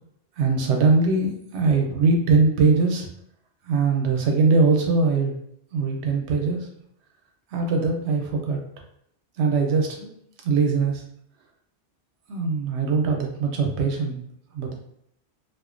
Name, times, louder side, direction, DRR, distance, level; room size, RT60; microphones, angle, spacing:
voice 1, 0.4-3.1 3.6-5.3 5.7-6.7 7.5-8.6 9.4-10.1 10.4-11.0 12.3-14.2 14.5-14.7, right 4 dB, 80° right, 2 dB, 0.8 m, -21 dB
2.4 x 2.1 x 2.4 m, 0.70 s
omnidirectional pair, 1.1 m